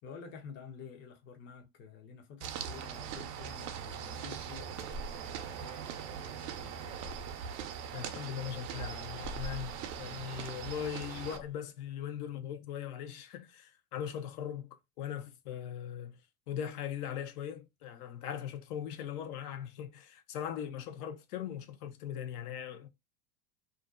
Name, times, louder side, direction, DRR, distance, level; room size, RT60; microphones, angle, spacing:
voice 1, 0.0-7.2, left 5 dB, 25° left, 0.5 m, -50 dB
sound 1, 2.4-11.4, right 8 dB, 65° right, 0.6 m, -41 dB
Breathing, 3.1-11.5, left 1 dB, 85° left, 1.2 m, -50 dB
voice 2, 7.9-16.2 16.5-22.9, left 9 dB, 70° left, 0.6 m, -40 dB
2.5 x 2.1 x 2.3 m
hypercardioid pair, 105°, 49 cm